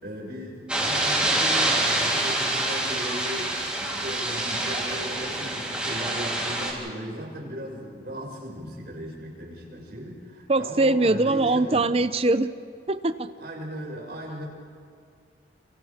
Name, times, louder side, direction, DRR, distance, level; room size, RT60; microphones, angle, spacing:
voice 1, 0.0-11.9 13.4-14.4, equal, 60° right, -4 dB, 6.3 m, -37 dB
sound 1, 0.7-6.7, right 1 dB, 5° right, 3.6 m, -26 dB
voice 2, 10.5-12.5 12.9-13.3, right 2 dB, 30° right, 11 dB, 0.7 m, -22 dB
29.5 x 27.5 x 3.6 m, 2.4 s
head